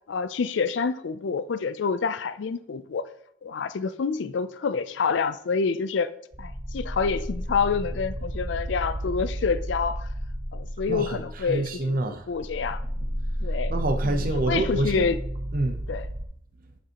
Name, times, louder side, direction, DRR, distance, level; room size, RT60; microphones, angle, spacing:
voice 1, 0.1-3.1 3.4-6.1 6.4-10.1 10.5-11.6 12.1-12.8 13.4-13.7 14.0-15.2 15.9-16.1, left 5 dB, 75° left, 0.4 m, -27 dB
sound 1, 6.3-11.9 12.2-16.2, equal, 30° right, 1.0 m, -32 dB
voice 2, 10.9-12.3 13.7-15.1 15.5-15.8, right 2 dB, 50° right, 0.7 m, -27 dB
9.7 x 5.3 x 2.9 m
head